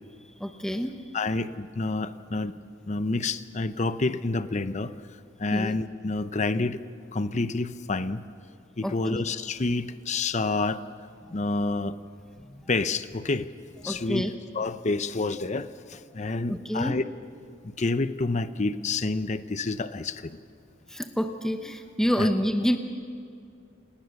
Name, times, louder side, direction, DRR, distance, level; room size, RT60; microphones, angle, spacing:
voice 1, 0.4-0.9 5.5-5.7 8.8-9.2 12.5-12.6 13.9-14.3 16.5-16.9 20.9-22.8, equal, 5° left, 6 dB, 0.9 m, -27 dB
voice 2, 1.1-2.5 2.9-5.0 5.4-6.8 7.1-8.2 8.8-10.8 11.3-12.0 12.7-13.5 13.8-14.2 14.5-17.0 17.6-20.4 22.2-22.3, left 3 dB, 40° left, 13 dB, 0.7 m, -28 dB
28.0 x 19.0 x 6.5 m, 2.4 s
head